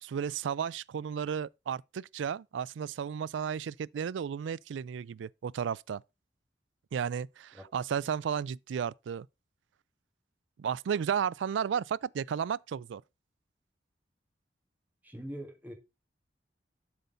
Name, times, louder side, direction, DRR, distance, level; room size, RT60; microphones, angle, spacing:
voice 1, 0.0-6.0 6.9-9.3 10.6-13.0, right 7 dB, 90° right, 0.3 m, -33 dB
voice 2, 15.0-15.7, equal, 10° right, 1.9 m, -42 dB
7.7 x 6.8 x 3.9 m
head